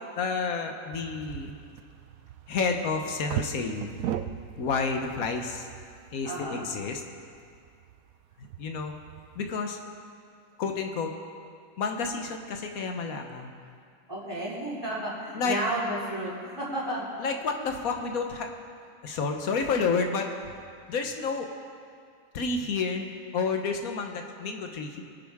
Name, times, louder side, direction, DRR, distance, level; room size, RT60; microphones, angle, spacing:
voice 1, 0.2-1.6 2.5-4.1 4.6-5.7 6.1-7.0 8.4-8.9 9.3-9.8 10.6-11.1 11.8-13.5 15.3-15.6 17.2-18.5 19.0-20.3 20.9-21.5 22.3-25.0, left 4 dB, 85° left, 4 dB, 1.4 m, -30 dB
sound 1, 0.9-9.6, right 11 dB, 85° right, 1.0 m, -39 dB
voice 2, 6.2-6.7 14.1-17.1, right 1 dB, 15° right, -9 dB, 3.9 m, -32 dB
23.0 x 9.4 x 3.5 m, 2.3 s
omnidirectional pair, 1.5 m